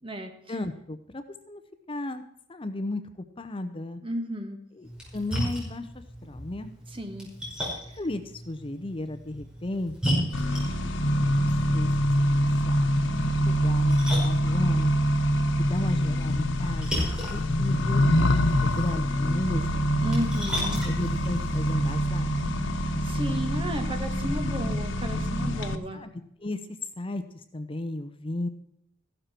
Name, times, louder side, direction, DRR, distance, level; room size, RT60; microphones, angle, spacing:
voice 1, 0.5-1.6 1.9-2.2 2.5-4.0 4.7-4.9 5.1-6.7 8.0-10.4 11.1-11.9 12.3-13.0 13.4-14.9 15.6-18.3 18.6-19.9 20.8-22.3 25.9-26.1 26.4-26.6 27.0-27.2 27.5-28.5, left 1 dB, 30° left, 9 dB, 0.7 m, -34 dB
voice 2, 4.0-4.6 6.9-7.3 20.0-20.8 23.0-26.0, equal, 30° right, 5 dB, 1.8 m, -33 dB
Splash splatter, 4.8-21.9, equal, 5° right, 5.4 m, -36 dB
Accelerating revving vroom, 10.3-25.7, equal, 85° left, 1.1 m, -25 dB
15.0 x 12.0 x 4.4 m, 0.73 s
head